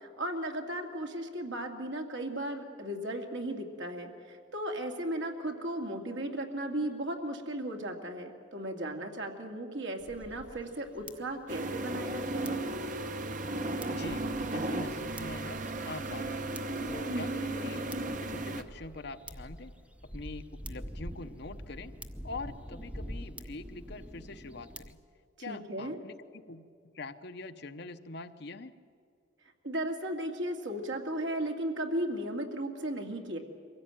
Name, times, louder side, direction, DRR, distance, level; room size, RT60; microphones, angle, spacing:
voice 1, 0.0-12.6 17.1-17.3 25.5-26.0 29.6-33.4, right 1 dB, 70° right, 3 dB, 2.3 m, -36 dB
sound 1, 10.0-24.9, equal, 5° right, 0.7 m, -47 dB
sound 2, 11.5-18.6, right 2 dB, 45° right, 1.0 m, -35 dB
voice 2, 13.9-14.2 14.5-16.5 16.9-17.9 18.2-19.7 20.1-21.9 22.2-25.0 25.4-26.6 26.9-28.7, left 3 dB, 60° left, 9 dB, 0.9 m, -44 dB
23.5 x 16.0 x 9.0 m, 2.4 s
head